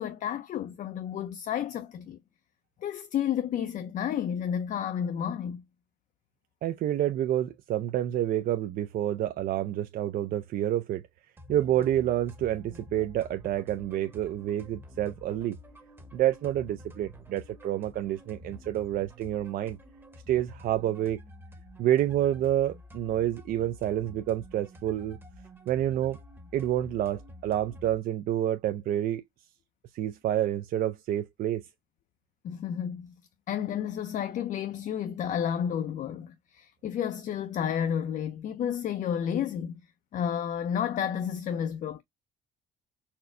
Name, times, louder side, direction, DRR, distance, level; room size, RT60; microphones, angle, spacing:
voice 1, 0.0-2.2 2.8-5.6 32.4-33.1 33.5-39.8 40.1-42.0, left 9 dB, 50° left, 0.4 m, -31 dB
voice 2, 6.6-11.0 11.5-15.6 16.1-19.8 20.3-21.2 21.8-25.2 25.7-26.2 26.5-29.2 29.9-31.6, right 12 dB, 60° right, 0.4 m, -28 dB
sound 1, 11.4-28.0, left 1 dB, 10° right, 0.8 m, -49 dB
4.3 x 2.1 x 2.4 m
cardioid pair, 110°, 17 cm